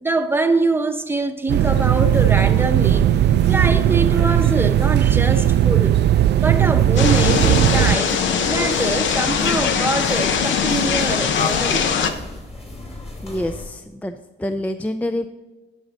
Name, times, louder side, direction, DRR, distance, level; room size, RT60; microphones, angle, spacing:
voice 1, 0.0-3.1 3.5-6.0 6.3-8.2 8.4-12.0, right 2 dB, 10° right, 0.8 m, -24 dB
sound 1, 1.5-8.0, right 12 dB, 60° right, 0.4 m, -17 dB
sound 2, 1.9-13.6, left 2 dB, 30° left, 3.0 m, -35 dB
sound 3, 7.0-12.1, left 6 dB, 70° left, 0.8 m, -21 dB
voice 2, 13.2-14.1 14.4-15.3, left 1 dB, 10° left, 0.4 m, -26 dB
11.5 x 6.1 x 4.0 m
cardioid pair, 90°, 20 cm